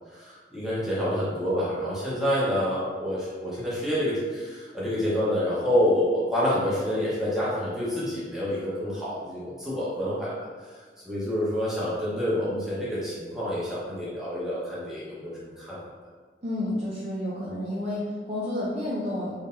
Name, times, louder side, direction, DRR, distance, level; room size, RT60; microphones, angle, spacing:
voice 1, 0.1-10.3 10.7-15.8, equal, 5° right, -9 dB, 1.1 m, -28 dB
voice 2, 16.4-19.3, left 1 dB, 40° right, -8 dB, 0.6 m, -30 dB
3.8 x 3.3 x 2.7 m, 1.5 s
head